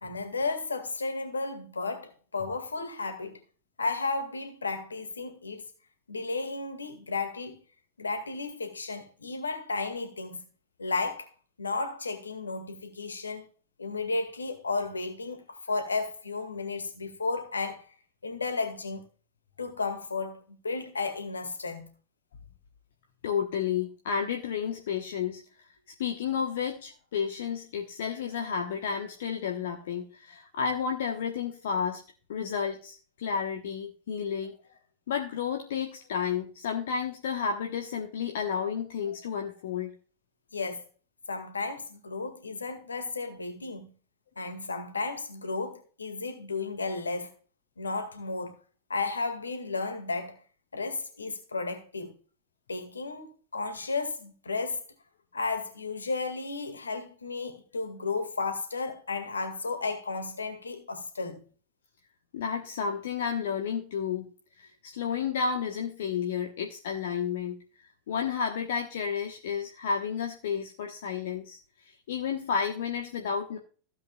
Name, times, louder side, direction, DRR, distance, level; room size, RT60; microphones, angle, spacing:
voice 1, 0.0-3.4 3.8-5.6 6.1-7.6 8.0-10.4 10.8-11.3 11.6-13.5 13.8-17.9 18.2-19.1 19.6-21.9 40.5-40.9 41.3-43.9 44.4-47.3 47.8-48.6 48.9-50.4 50.7-52.1 52.7-54.8 55.3-61.5, left 3 dB, 75° left, 1.9 m, -33 dB
voice 2, 23.2-25.7 26.0-32.0 32.3-34.6 35.1-39.9 62.3-64.3 64.6-67.6 67.8-71.6 71.8-73.6, left 6 dB, 60° left, 1.2 m, -31 dB
15.5 x 8.2 x 2.4 m
figure-of-eight pair, 90°, 0 cm